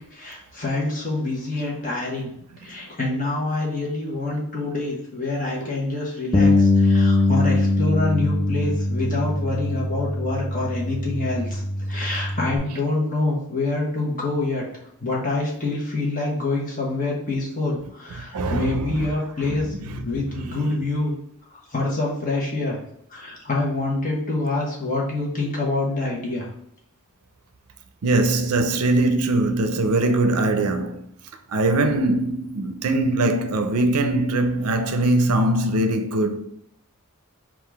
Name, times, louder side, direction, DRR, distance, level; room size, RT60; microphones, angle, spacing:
voice 1, 0.1-2.3 2.6-11.6 11.9-14.6 15.0-19.7 20.0-21.1 21.7-22.8 23.1-26.5, left 2 dB, 35° left, 1.1 m, -26 dB
Bass guitar, 6.3-12.6, left 2 dB, 15° left, 0.3 m, -21 dB
voice 2, 18.3-19.0 19.5-20.0 20.4-20.6 28.0-31.0 31.5-36.4, right 2 dB, 85° right, 0.5 m, -22 dB
3.8 x 2.4 x 4.6 m
head